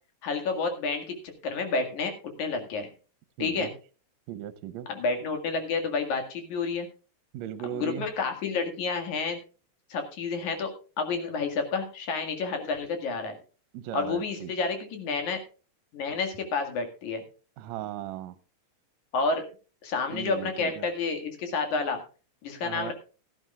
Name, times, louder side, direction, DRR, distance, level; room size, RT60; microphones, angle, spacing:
voice 1, 0.2-1.1 1.4-2.1 2.4-2.9 3.4-3.7 4.9-6.9 7.7-9.4 9.9-10.7 11.0-13.4 13.9-15.4 15.9-17.2 19.1-19.4 19.8-22.0 22.4-22.9, left 4 dB, 80° left, 3.4 m, -29 dB
voice 2, 3.4-3.7 4.3-4.9 7.3-8.1 13.7-14.5 17.6-18.4 20.1-20.9 22.6-22.9, right 11 dB, 75° right, 2.0 m, -37 dB
17.0 x 13.0 x 2.4 m
omnidirectional pair, 3.4 m